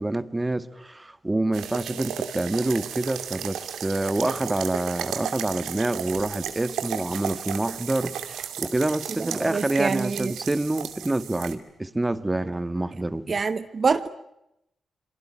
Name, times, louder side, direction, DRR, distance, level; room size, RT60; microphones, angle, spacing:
voice 1, 0.0-13.3, right 2 dB, 20° right, 1.8 m, -27 dB
sound 1, 1.5-11.5, right 9 dB, 85° right, 2.4 m, -34 dB
voice 2, 9.2-10.3 13.3-14.1, right 5 dB, 50° right, 1.3 m, -26 dB
28.0 x 22.5 x 8.7 m
supercardioid pair, 50°, 0 cm